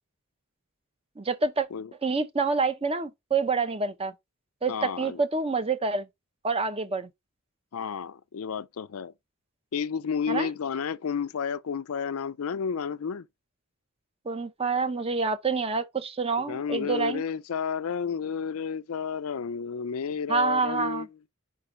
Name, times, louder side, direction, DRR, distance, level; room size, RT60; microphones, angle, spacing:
voice 1, 1.2-1.7 2.0-4.1 4.6-6.1 6.4-7.1 10.3-10.5 14.3-17.2 20.3-21.1, right 4 dB, 25° right, 0.7 m, -27 dB
voice 2, 4.7-5.2 7.7-9.1 9.7-13.3 16.4-21.1, left 6 dB, 80° left, 0.5 m, -31 dB
5.2 x 4.2 x 4.8 m
head